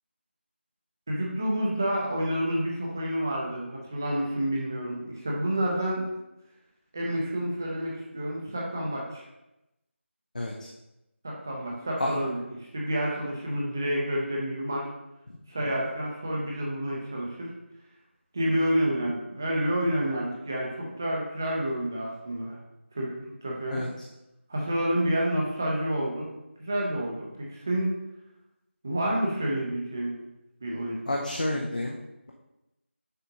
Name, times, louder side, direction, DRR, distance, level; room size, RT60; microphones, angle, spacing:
voice 1, 1.1-6.1 6.9-9.2 11.2-12.4 12.7-14.9 15.5-17.5 18.3-22.6 22.9-23.1 23.4-23.8 24.5-26.3 26.6-27.9 28.8-30.1 30.6-31.0, right 1 dB, 15° right, -3 dB, 0.6 m, -29 dB
voice 2, 31.1-32.0, left 1 dB, 40° left, -1 dB, 0.6 m, -29 dB
6.7 x 4.9 x 2.9 m, 0.92 s
figure-of-eight pair, 175°, 7 cm